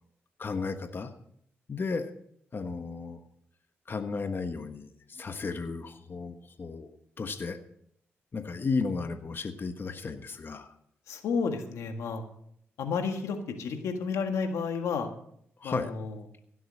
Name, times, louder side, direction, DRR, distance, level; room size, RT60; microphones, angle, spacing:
voice 1, 0.4-1.1 1.7-2.1 2.5-3.2 3.9-6.9 7.2-7.6 8.3-10.7 15.6-15.9, left 4 dB, 45° left, 7 dB, 1.4 m, -34 dB
voice 2, 11.1-12.2 12.8-15.1 15.6-16.2, left 5 dB, 90° left, 5 dB, 1.7 m, -31 dB
16.5 x 7.8 x 6.6 m, 0.68 s
cardioid pair, 70°, 5 cm